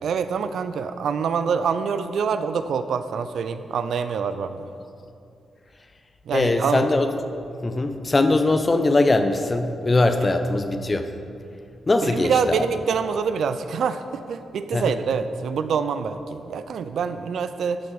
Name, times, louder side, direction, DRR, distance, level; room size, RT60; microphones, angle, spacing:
voice 1, 0.0-4.7 6.3-6.8 10.2-10.3 12.0-17.8, right 6 dB, 70° right, 11 dB, 0.5 m, -26 dB
voice 2, 6.3-7.1 7.6-11.0 11.9-12.7 14.7-14.9, left 2 dB, 35° left, 7 dB, 0.9 m, -21 dB
11.5 x 6.1 x 5.8 m, 2.5 s
hypercardioid pair, 40°, 0 cm